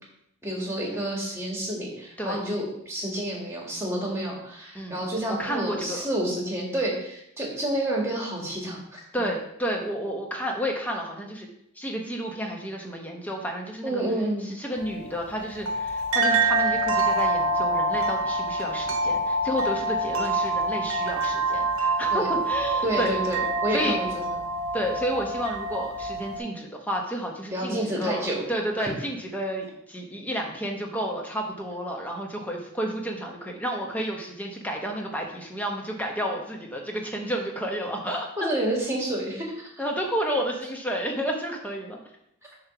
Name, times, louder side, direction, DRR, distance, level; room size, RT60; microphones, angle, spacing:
voice 1, 0.4-9.2 13.8-14.5 22.1-22.3 22.8-24.4 27.5-28.4 28.8-28.9 38.4-39.5, right 1 dB, 10° right, -2 dB, 1.6 m, -29 dB
voice 2, 5.3-6.1 9.1-11.5 11.8-14.0 14.4-23.1 23.7-24.0 24.7-38.5 39.8-42.0, equal, 5° left, 1 dB, 0.9 m, -31 dB
sound 1, 14.8-26.4, right 2 dB, 80° right, 1.0 m, -26 dB
7.2 x 3.0 x 5.9 m, 0.75 s
head